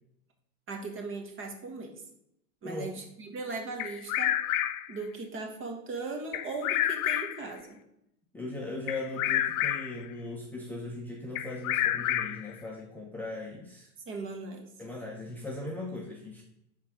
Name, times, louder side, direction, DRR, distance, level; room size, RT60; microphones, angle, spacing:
voice 1, 0.7-1.9 2.6-4.3 4.9-7.8 14.1-14.7, right 3 dB, 30° right, 3 dB, 1.5 m, -38 dB
voice 2, 2.6-3.0 8.3-13.9 14.8-16.4, left 2 dB, 5° left, -3 dB, 0.8 m, -39 dB
Bird vocalization bird call bird song, 3.8-5.0 6.3-7.5 8.9-10.0 11.4-12.5, left 12 dB, 75° left, 0.7 m, -29 dB
10.5 x 3.7 x 4.8 m, 0.81 s
supercardioid pair, 135°, 42 cm